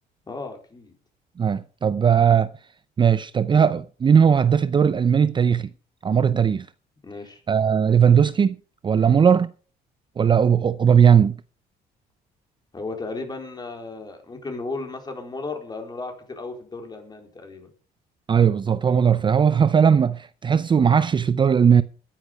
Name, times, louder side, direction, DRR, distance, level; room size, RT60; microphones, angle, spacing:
voice 1, 0.3-0.9 7.0-7.4 9.0-9.2 12.7-17.7, left 3 dB, 25° left, 4.2 m, -35 dB
voice 2, 1.4-2.5 3.0-5.7 6.0-6.7 7.5-8.6 8.8-9.5 10.2-11.3 18.3-21.8, right 7 dB, 30° right, 0.5 m, -18 dB
14.5 x 10.0 x 5.1 m
cardioid pair, 110°, 17 cm